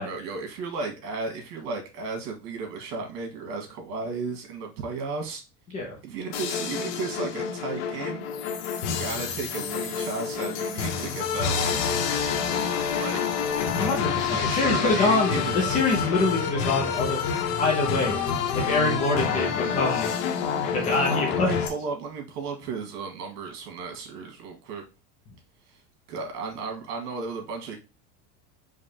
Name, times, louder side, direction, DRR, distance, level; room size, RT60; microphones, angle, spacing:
voice 1, 0.0-5.4 6.0-8.3 8.8-11.8 13.0-13.2 14.3-15.8 16.9-17.0 20.8-24.8 26.1-27.8, right 4 dB, 85° right, 3 dB, 2.0 m, -34 dB
sound 1, 6.3-21.7, left 7 dB, 60° left, 1.1 m, -28 dB
voice 2, 13.8-17.2 17.6-18.2 18.5-20.2 20.5-21.5, left 3 dB, 15° left, 0 dB, 0.4 m, -25 dB
4.8 x 2.2 x 4.3 m, 0.29 s
cardioid pair, 175°, 46 cm